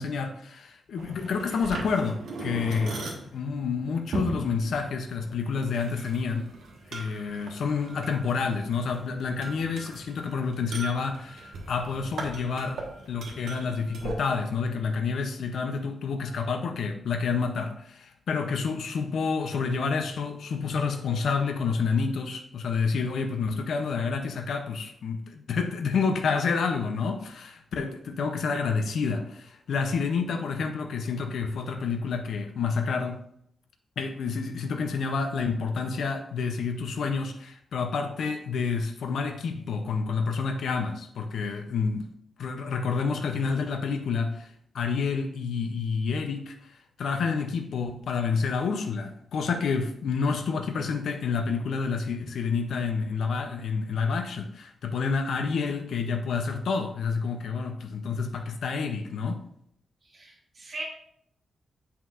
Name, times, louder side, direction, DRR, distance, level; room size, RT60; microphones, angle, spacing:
voice 1, 0.0-3.0 3.3-6.5 6.9-33.2 34.0-42.1 42.4-59.4, left 5 dB, 65° left, 5 dB, 0.6 m, -29 dB
sound 1, 1.0-14.1, right 2 dB, 75° right, 1.2 m, -39 dB
voice 2, 60.1-60.8, right 2 dB, 35° right, -4 dB, 1.9 m, -39 dB
7.4 x 5.7 x 2.4 m, 0.71 s
wide cardioid pair, 175°, 0 cm